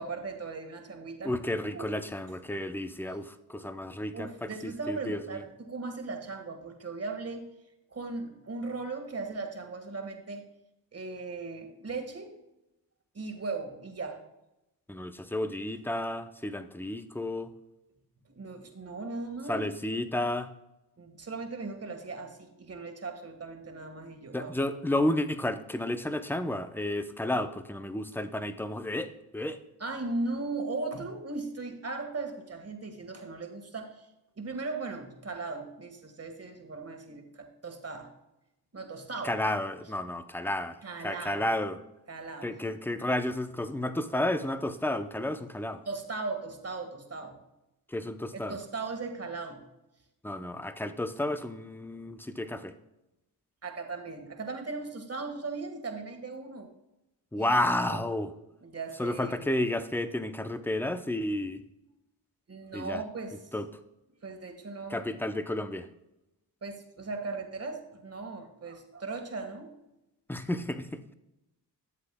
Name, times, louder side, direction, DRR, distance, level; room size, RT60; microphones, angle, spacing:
voice 1, 0.0-1.4 1.7-2.0 4.1-7.5 7.9-10.4 10.9-12.3 13.1-14.2 18.3-19.6 21.0-24.5 29.8-34.1 34.4-38.1 38.7-39.4 40.8-41.5 42.1-42.5 45.8-47.4 48.3-49.6 53.6-56.7 57.3-57.6 57.9-58.0 58.6-59.5 62.5-63.5 64.2-65.1 66.6-69.8, right 3 dB, 35° right, 5 dB, 1.6 m, -38 dB
voice 2, 1.2-5.4 14.9-17.5 19.5-20.5 24.3-29.6 39.2-40.8 41.0-41.8 42.4-45.8 47.9-48.6 50.2-52.7 57.3-58.3 59.0-61.6 62.7-63.0 63.5-63.7 64.9-65.9 70.3-71.0, left 1 dB, 5° left, 10 dB, 0.6 m, -31 dB
12.0 x 7.6 x 2.3 m, 0.91 s
cardioid pair, 65°, 42 cm